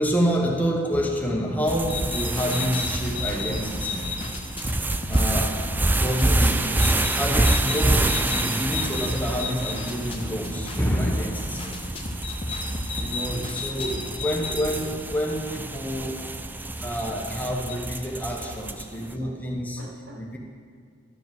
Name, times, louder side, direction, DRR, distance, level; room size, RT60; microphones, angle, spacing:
voice 1, 0.0-4.0 5.1-5.6 5.9-11.7 12.9-16.1 16.8-19.8 20.2-20.4, equal, 10° left, 0 dB, 1.0 m, -28 dB
sound 1, 0.9-17.8, left 5 dB, 65° left, 0.8 m, -37 dB
sound 2, 1.6-14.1, equal, 30° left, 1.0 m, -36 dB
sound 3, 1.7-19.0, right 2 dB, 10° right, 0.3 m, -27 dB
voice 2, 11.9-13.6 14.1-14.4 16.0-16.4 16.8-17.2 18.2-20.2, right 1 dB, 70° right, 0 dB, 1.5 m, -48 dB
12.0 x 4.9 x 7.8 m, 2.2 s
head